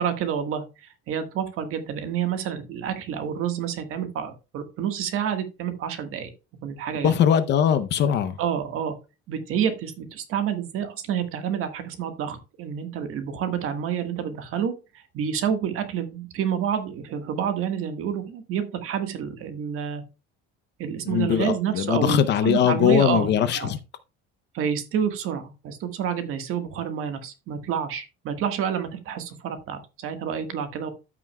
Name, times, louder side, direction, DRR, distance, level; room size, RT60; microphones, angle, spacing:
voice 1, 0.0-6.3 6.6-7.1 8.4-8.9 9.3-20.0 20.8-23.7 24.5-30.9, right 8 dB, 50° right, 1.4 m, -28 dB
voice 2, 7.0-8.4 21.1-23.8, left 9 dB, 40° left, 0.6 m, -21 dB
13.5 x 6.0 x 2.2 m
cardioid pair, 170°, 29 cm